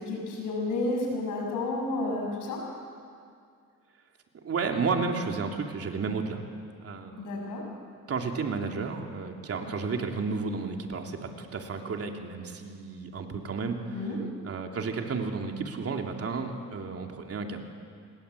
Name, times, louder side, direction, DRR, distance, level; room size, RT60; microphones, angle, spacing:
voice 1, 0.0-2.6 7.2-7.6 13.9-14.2, left 2 dB, 90° left, 0 dB, 7.6 m, -31 dB
voice 2, 4.4-6.4 6.8-7.2 8.1-14.2 14.4-17.6, right 4 dB, 50° right, 3 dB, 3.2 m, -32 dB
28.0 x 21.0 x 8.5 m, 2.2 s
cardioid pair, 90°, 30 cm